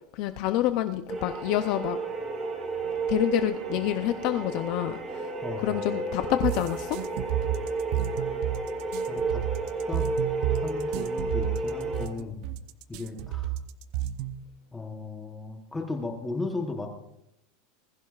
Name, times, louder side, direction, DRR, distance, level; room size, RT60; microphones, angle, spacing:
voice 1, 0.1-2.0 3.1-5.3 5.6-7.0, left 14 dB, 45° left, 9 dB, 0.5 m, -27 dB
sound 1, 1.1-12.1, right 3 dB, 20° right, 2.2 m, -32 dB
voice 2, 5.4-5.9 9.1-9.4 9.9-10.1 10.5-12.4 12.9-13.5 14.7-16.9, left 3 dB, 5° left, 2 dB, 1.0 m, -36 dB
sound 2, 6.4-14.4, right 12 dB, 45° right, 0.6 m, -31 dB
20.0 x 15.5 x 2.4 m, 0.81 s
supercardioid pair, 175°, 0 cm